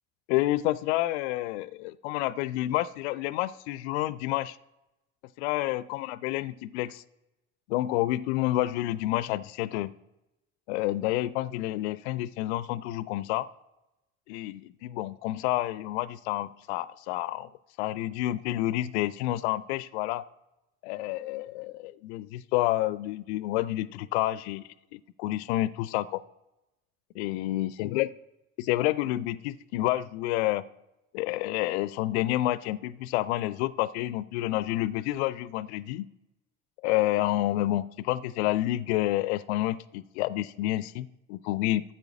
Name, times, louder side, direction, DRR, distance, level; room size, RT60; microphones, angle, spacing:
voice 1, 0.3-4.6 5.4-7.0 7.7-9.9 10.7-13.5 14.3-17.5 17.8-20.3 20.8-26.2 27.1-28.1 28.7-30.7 31.1-36.1 36.8-41.9, left 15 dB, 65° left, 19 dB, 0.5 m, -29 dB
8.4 x 7.9 x 6.0 m, 0.94 s
figure-of-eight pair, 55°, 36 cm